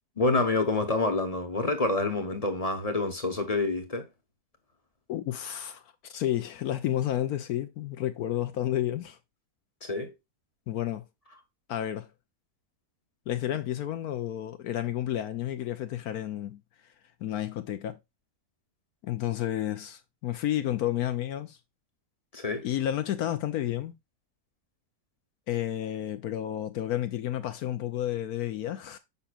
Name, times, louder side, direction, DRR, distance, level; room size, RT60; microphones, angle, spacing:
voice 1, 0.2-4.1 9.8-10.1 22.3-22.7, left 3 dB, 25° left, 1.0 m, -27 dB
voice 2, 5.1-9.2 10.7-11.0 11.7-12.1 13.3-16.6 17.2-18.0 19.0-21.6 22.6-23.9 25.5-29.0, left 12 dB, 75° left, 1.2 m, -31 dB
7.0 x 5.7 x 2.4 m
omnidirectional pair, 1.6 m